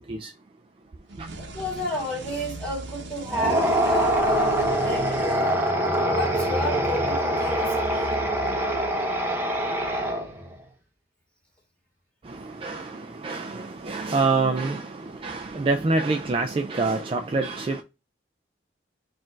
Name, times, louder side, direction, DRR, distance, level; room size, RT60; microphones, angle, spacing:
sound 1, 1.1-6.0, right 2 dB, 75° right, 0.9 m, -40 dB
voice 1, 1.4-4.6 4.8-5.6 6.0-8.2, left 1 dB, 5° left, 1.8 m, -31 dB
sound 2, 3.3-10.5, right 1 dB, 10° right, 0.7 m, -24 dB
voice 2, 12.3-17.8, right 3 dB, 30° right, 0.3 m, -26 dB
4.4 x 2.5 x 4.3 m
head